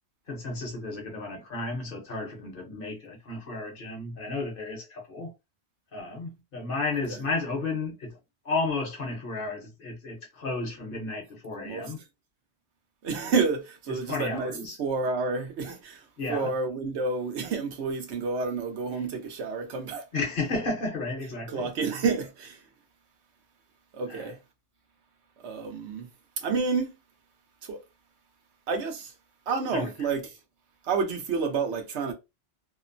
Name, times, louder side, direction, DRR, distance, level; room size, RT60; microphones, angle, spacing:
voice 1, 0.3-5.3 5.9-8.2 8.4-12.0 13.9-14.8 16.2-16.5 18.9-19.0 20.1-21.7 24.1-24.3 29.7-30.1, left 3 dB, 55° left, 1.0 m, -33 dB
voice 2, 11.5-11.9 13.0-14.5 14.8-20.0 21.5-22.6 23.9-24.4 25.4-26.1 26.4-26.9 27.6-27.8 28.7-29.1 29.5-30.2 30.8-32.1, right 4 dB, 80° right, 1.0 m, -29 dB
2.9 x 2.0 x 2.5 m
omnidirectional pair, 1.1 m